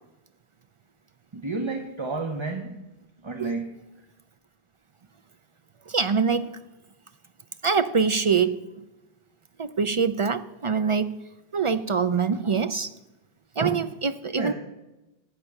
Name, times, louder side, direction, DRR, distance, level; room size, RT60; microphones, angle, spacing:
voice 1, 1.3-2.8 3.2-3.7 14.3-14.5, right 3 dB, 30° right, 5 dB, 0.8 m, -31 dB
voice 2, 5.9-6.5 7.6-8.8 9.6-11.1 11.5-12.9 13.6-14.5, right 5 dB, 55° right, 12 dB, 0.3 m, -24 dB
13.0 x 8.5 x 6.5 m, 0.99 s
omnidirectional pair, 1.2 m